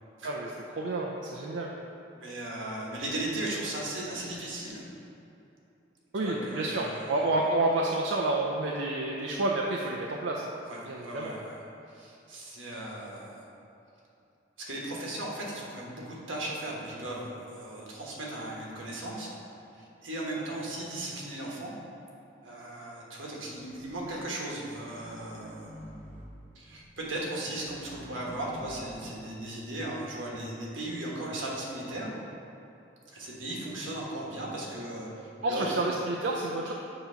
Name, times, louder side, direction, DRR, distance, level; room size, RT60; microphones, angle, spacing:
voice 1, 0.2-1.7 6.1-10.5 10.8-11.3 35.4-36.7, right 2 dB, 65° right, -1 dB, 0.5 m, -29 dB
voice 2, 2.1-4.8 6.1-7.1 10.7-11.6 11.9-13.4 14.7-19.3 19.7-21.7 22.4-25.9 26.5-32.2 33.1-35.8, right 1 dB, 85° right, -3 dB, 1.3 m, -37 dB
sound 1, 23.7-24.0 24.7-26.4 26.7-26.9 27.6-29.6 30.4-30.5, equal, 45° right, 0.9 m, -47 dB
8.0 x 2.9 x 5.6 m, 2.8 s
head